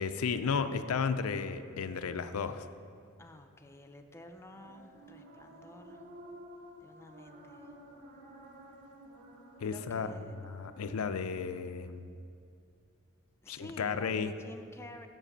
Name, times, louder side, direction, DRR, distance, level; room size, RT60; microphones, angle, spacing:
voice 1, 0.0-2.7 9.6-10.1 10.5-12.1 13.5-14.3, left 5 dB, 85° left, 10 dB, 0.5 m, -33 dB
voice 2, 3.2-6.0 6.8-7.7 9.6-10.3 13.4-15.1, left 1 dB, 10° left, 4 dB, 0.5 m, -51 dB
sound 1, 4.5-10.9, right 1 dB, 45° right, 2.3 m, -52 dB
8.0 x 7.4 x 6.6 m, 2.4 s
head